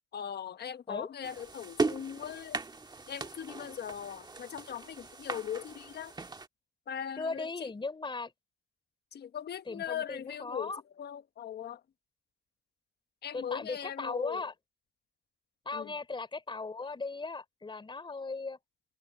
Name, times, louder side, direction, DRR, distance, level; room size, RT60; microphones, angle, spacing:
voice 1, 0.1-2.6 3.1-6.1 6.9-7.7 9.1-11.8 13.2-14.5 15.7-15.9, left 9 dB, 55° left, 1.2 m, -40 dB
sound 1, 1.2-6.5, right 3 dB, 20° right, 1.6 m, -38 dB
voice 2, 7.2-8.3 9.7-10.8 13.3-14.5 15.7-18.6, left 3 dB, 25° left, 4.0 m, -37 dB
cardioid pair, 90°, 20 cm